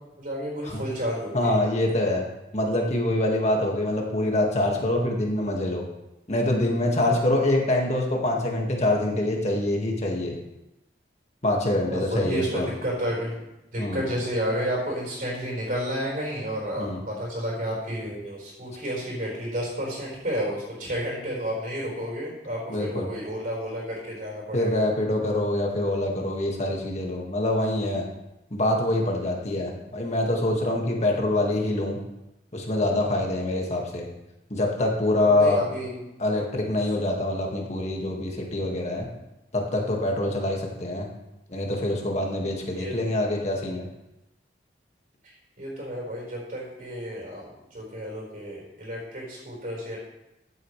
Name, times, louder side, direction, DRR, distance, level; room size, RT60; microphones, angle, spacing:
voice 1, 0.2-1.6 11.9-13.5 13.7-24.9 35.4-36.0 42.8-43.0 45.6-50.0, equal, 50° right, -4 dB, 4.6 m, -31 dB
voice 2, 1.3-2.2 2.5-5.8 6.3-10.4 11.4-12.7 13.8-14.1 16.8-17.0 22.7-23.1 24.5-28.1 28.5-32.0 32.5-34.1 34.5-35.6 36.2-39.1 39.5-41.1 41.5-43.9, left 1 dB, 40° left, 0 dB, 1.8 m, -25 dB
14.5 x 8.3 x 3.2 m, 0.93 s
head